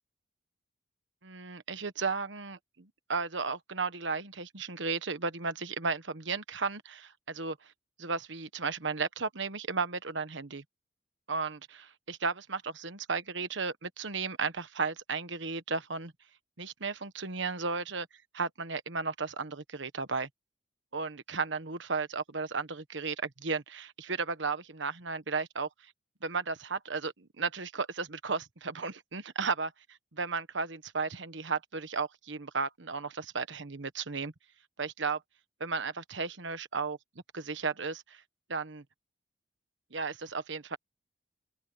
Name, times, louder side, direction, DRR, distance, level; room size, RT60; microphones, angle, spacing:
voice 1, 1.2-7.7 8.0-10.6 11.3-16.1 16.6-18.1 18.3-20.3 20.9-25.7 26.2-29.7 30.1-34.3 34.8-35.2 35.6-37.0 37.3-38.2 38.5-38.8 39.9-40.8, right 4 dB, 65° right, 1.3 m, -34 dB
open air
head